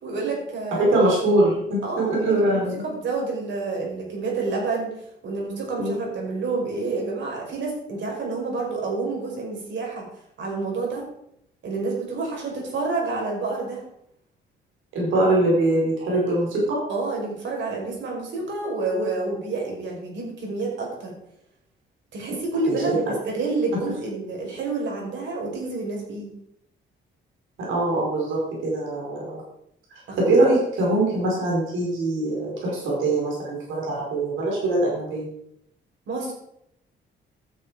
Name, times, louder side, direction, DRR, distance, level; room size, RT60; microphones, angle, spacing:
voice 1, 0.0-0.9 1.8-4.9 5.2-10.1 10.4-11.0 11.6-13.8 16.9-21.1 22.1-26.3 30.1-30.4 36.1-36.3, right 3 dB, 70° right, -1 dB, 5.3 m, -29 dB
voice 2, 0.8-2.8 5.8-6.0 14.9-16.8 22.7-23.0 27.6-29.4 30.1-35.3, right 2 dB, 85° right, -3 dB, 5.1 m, -22 dB
12.5 x 7.5 x 4.9 m, 0.75 s
cardioid pair, 90°, 20 cm